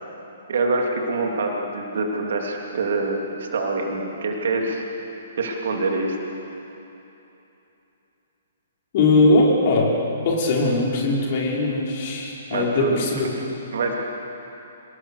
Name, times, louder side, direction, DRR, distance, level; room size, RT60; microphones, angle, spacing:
voice 1, 0.5-4.8 5.4-6.2 12.5-13.0 13.7-13.9, right 3 dB, 55° right, 1 dB, 3.2 m, -25 dB
voice 2, 8.9-9.9 10.2-13.3, left 2 dB, 40° left, -3 dB, 5.3 m, -20 dB
25.5 x 19.0 x 6.8 m, 3.0 s
figure-of-eight pair, 120°, 0 cm